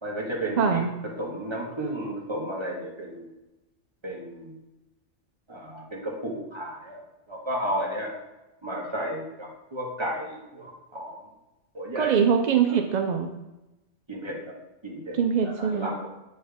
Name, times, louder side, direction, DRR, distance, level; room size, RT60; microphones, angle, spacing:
voice 1, 0.0-0.8 1.2-3.3 4.0-4.6 5.5-7.0 7.3-8.1 8.6-11.2 11.7-12.1 12.7-12.8 14.1-14.4 14.8-15.1 15.6-15.9, right 1 dB, 25° right, -3 dB, 1.5 m, -33 dB
voice 2, 0.6-0.9 12.0-13.3 15.1-15.9, right 7 dB, 65° right, 5 dB, 0.4 m, -23 dB
8.3 x 4.3 x 3.5 m, 0.99 s
omnidirectional pair, 1.3 m